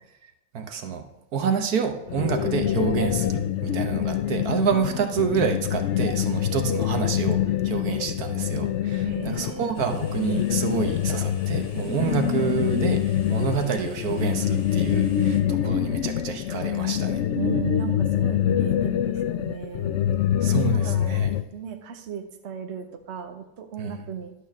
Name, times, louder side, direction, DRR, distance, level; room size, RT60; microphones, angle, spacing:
voice 1, 0.5-1.0 1.3-17.2 20.4-21.3 23.8-24.0, right 7 dB, 75° right, 6 dB, 1.5 m, -28 dB
sound 1, 2.1-21.4, left 11 dB, 65° left, 0.8 m, -25 dB
voice 2, 9.0-9.7 12.0-12.1 17.3-20.0 20.7-21.3 21.5-24.3, right 8 dB, 50° right, 5 dB, 1.1 m, -36 dB
sound 2, 9.7-15.4, left 2 dB, 25° left, 1.3 m, -50 dB
11.5 x 4.3 x 7.2 m, 0.93 s
omnidirectional pair, 1.6 m